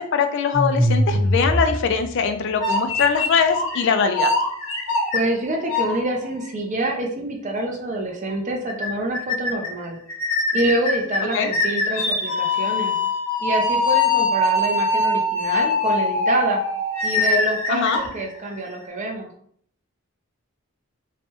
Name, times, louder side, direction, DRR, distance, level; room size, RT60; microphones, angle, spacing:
voice 1, 0.0-4.3 11.3-11.5 17.7-18.0, left 6 dB, 60° left, 7 dB, 0.3 m, -21 dB
sound 1, 0.5-2.1 2.6-3.8 4.1-6.0 6.4-6.5 7.5-7.6 7.9-8.0 8.3-8.4 8.7-8.9 9.1-9.7 10.1-18.8, left 2 dB, 85° left, 1.1 m, -22 dB
voice 2, 5.1-10.0 10.5-13.0 13.4-16.6 17.0-19.3, right 1 dB, 35° right, 2 dB, 0.5 m, -26 dB
3.2 x 2.2 x 2.9 m, 0.62 s
head